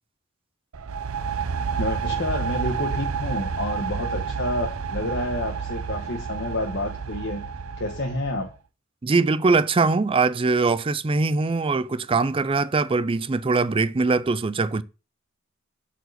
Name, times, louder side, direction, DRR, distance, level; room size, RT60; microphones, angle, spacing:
sound 1, 0.7-8.5, right 6 dB, 85° right, 0.6 m, -30 dB
voice 1, 1.8-7.4 7.8-8.5, left 1 dB, 55° left, 1.2 m, -29 dB
voice 2, 9.0-14.8, right 3 dB, 25° right, 0.4 m, -22 dB
8.1 x 4.7 x 6.5 m
head